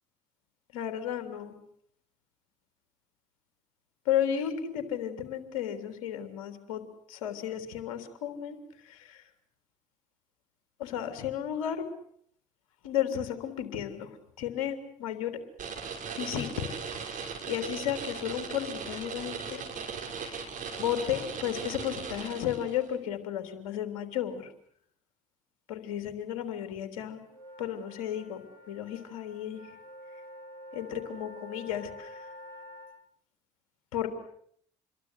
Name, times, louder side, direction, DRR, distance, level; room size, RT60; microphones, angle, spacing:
voice 1, 0.7-1.5 4.0-6.8 7.1-8.6 8.8-9.2 10.8-11.9 12.8-14.1 14.4-15.4 16.1-16.5 17.0-19.6 20.2-20.4 20.8-24.5 25.7-27.2 27.6-29.6 30.7-32.3 33.9-34.1, left 10 dB, 70° left, 8 dB, 3.4 m, -33 dB
sound 1, 15.6-22.9, right 6 dB, 50° right, 5.8 m, -38 dB
sound 2, 27.3-32.9, left 1 dB, 85° right, 7.6 m, -48 dB
28.0 x 22.5 x 8.2 m, 0.66 s
figure-of-eight pair, 45°, 17 cm